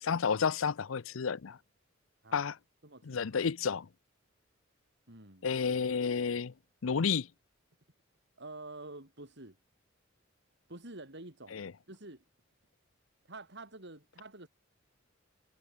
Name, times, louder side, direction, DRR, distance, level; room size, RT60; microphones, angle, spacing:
voice 1, 0.0-1.6 2.3-2.6 3.1-3.9 5.4-6.5 6.8-7.3 11.5-11.7, left 6 dB, 85° left, 0.6 m, -31 dB
voice 2, 2.8-3.4 5.1-5.5 8.4-9.6 10.7-12.2 13.3-14.5, right 2 dB, 60° right, 7.0 m, -48 dB
head